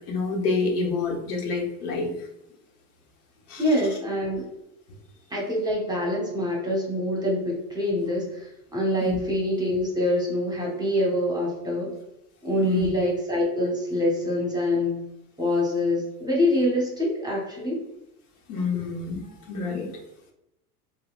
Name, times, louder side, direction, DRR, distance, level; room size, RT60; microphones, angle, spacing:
voice 1, 0.1-2.1 3.5-3.6 9.0-9.2 12.6-12.9 18.5-19.9, left 4 dB, 75° left, 1 dB, 1.0 m, -27 dB
voice 2, 3.6-4.4 5.3-11.9 12.4-15.0 15.4-17.8, left 1 dB, 10° right, -3 dB, 1.0 m, -25 dB
4.0 x 2.1 x 2.5 m, 0.85 s
hypercardioid pair, 100°, 46 cm